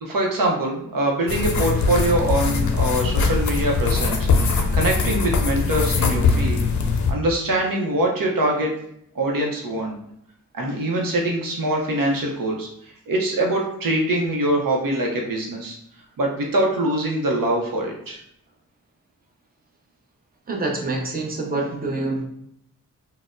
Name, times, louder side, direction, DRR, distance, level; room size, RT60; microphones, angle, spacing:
voice 1, 0.0-6.7 7.1-8.7 9.1-9.9 10.5-15.8 16.2-18.2, right 1 dB, 75° right, 0 dB, 0.7 m, -23 dB
sound 1, 1.3-7.1, left 4 dB, 55° left, 0.5 m, -21 dB
voice 2, 20.5-22.2, right 2 dB, 25° right, 0 dB, 0.7 m, -26 dB
4.0 x 2.1 x 2.4 m, 0.73 s
cardioid pair, 70°, 35 cm